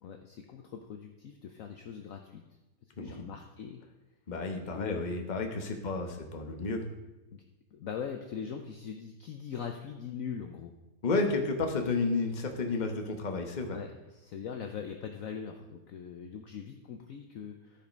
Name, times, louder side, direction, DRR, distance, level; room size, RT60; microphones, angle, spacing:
voice 1, 0.0-2.4 3.0-3.8 4.7-5.0 5.6-6.2 6.5-6.7 7.3-7.4 7.7-10.7 13.7-17.9, left 7 dB, 60° left, 4 dB, 1.0 m, -41 dB
voice 2, 4.3-6.8 11.0-13.8, left 3 dB, 30° left, 4 dB, 1.0 m, -31 dB
13.0 x 5.2 x 5.2 m, 1.0 s
omnidirectional pair, 1.9 m